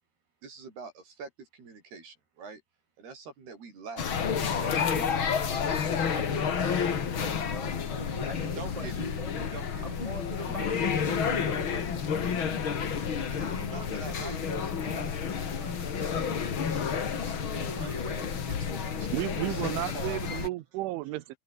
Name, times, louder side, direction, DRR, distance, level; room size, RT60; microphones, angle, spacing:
voice 1, 0.4-2.6 3.0-4.1 4.6-5.3 8.4-9.0 9.4-9.9 10.5-11.1 13.3-15.1 15.5-16.5 16.8-20.4, right 4 dB, 55° right, 8.1 m, -45 dB
sound 1, 4.0-20.5, left 7 dB, 50° left, 1.5 m, -30 dB
voice 2, 6.1-9.5 9.8-12.1 13.4-14.7 17.5-18.6, equal, 10° right, 1.7 m, -42 dB
voice 3, 19.1-21.4, right 17 dB, 85° right, 3.4 m, -33 dB
omnidirectional pair, 5.5 m